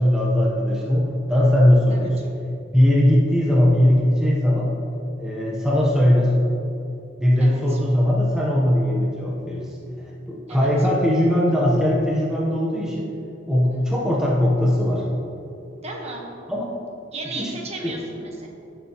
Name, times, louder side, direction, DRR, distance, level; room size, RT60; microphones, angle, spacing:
voice 1, 0.0-2.2 2.7-4.7 5.2-6.3 7.2-9.7 10.3-13.1 13.5-15.1 16.5-16.7 17.3-17.5 17.8-17.9, left 1 dB, 5° right, -5 dB, 0.9 m, -19 dB
voice 2, 1.9-2.3 7.4-7.8 10.5-10.7 13.7-13.9 15.8-16.2 17.1-18.5, right 3 dB, 30° right, 0 dB, 1.2 m, -35 dB
16.0 x 6.9 x 3.0 m, 2.8 s
head